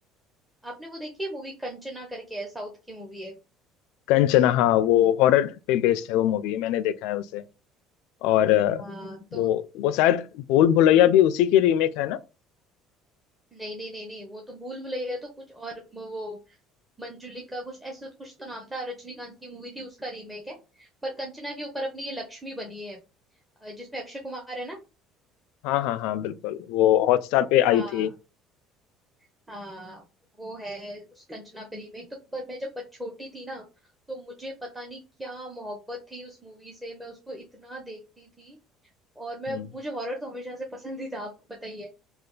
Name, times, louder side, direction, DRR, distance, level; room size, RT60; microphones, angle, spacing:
voice 1, 0.6-3.3 8.8-9.5 13.5-16.4 17.0-23.0 23.6-24.8 27.7-28.0 29.5-30.0 30.4-32.1 32.3-32.7 33.0-33.6 34.1-38.6 39.2-41.9, equal, 10° right, 0.6 m, -37 dB
voice 2, 4.1-7.4 8.2-8.8 9.3-12.2 25.6-28.1 39.5-39.7, left 12 dB, 80° left, 0.3 m, -21 dB
3.3 x 2.3 x 3.7 m
cardioid pair, 140°, 0 cm